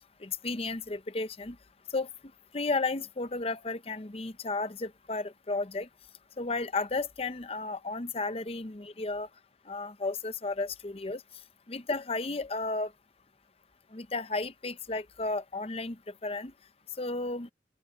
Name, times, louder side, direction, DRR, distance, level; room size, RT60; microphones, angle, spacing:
voice 1, 0.2-1.6 1.9-2.1 2.5-5.9 6.4-9.3 9.7-11.2 11.7-12.9 13.9-16.5 17.0-17.5, left 3 dB, 35° left, 0.7 m, -33 dB
open air
head